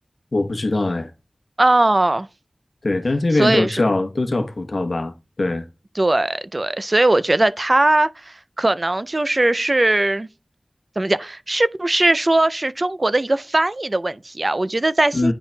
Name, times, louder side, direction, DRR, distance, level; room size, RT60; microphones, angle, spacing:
voice 1, 0.3-1.1 2.8-5.1 5.4-5.7 15.1-15.3, left 2 dB, 70° left, 0.8 m, -21 dB
voice 2, 1.6-2.3 3.3-3.8 6.0-10.3 11.0-15.3, right 2 dB, 45° right, 0.3 m, -19 dB
9.6 x 5.6 x 2.2 m
wide cardioid pair, 50°, 0 cm